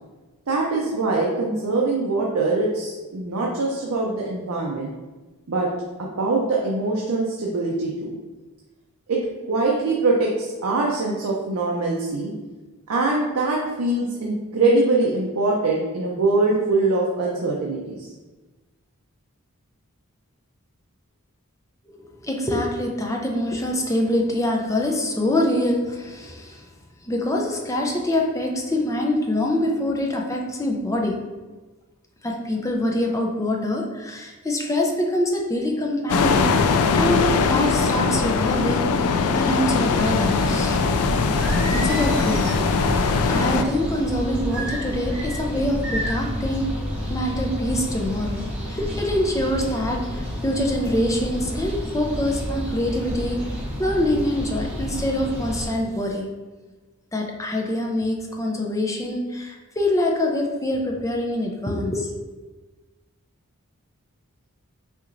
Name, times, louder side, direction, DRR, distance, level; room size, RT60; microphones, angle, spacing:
voice 1, 0.5-4.9 5.5-5.7 6.2-8.1 9.1-12.3 12.9-18.0, right 3 dB, 70° right, -2 dB, 0.6 m, -23 dB
voice 2, 21.9-26.7 27.0-31.2 32.2-39.0 39.3-40.8 41.7-42.5 43.3-46.7 47.1-56.3 57.1-62.2, left 1 dB, 15° left, 1 dB, 0.5 m, -25 dB
sound 1, 36.1-43.6, left 5 dB, 75° left, 0.3 m, -21 dB
sound 2, 39.9-55.7, equal, 5° right, 0.9 m, -30 dB
Singing, 41.4-43.5 44.5-45.4 45.8-46.3, right 1 dB, 55° right, 0.9 m, -33 dB
5.8 x 2.9 x 2.6 m, 1.2 s
head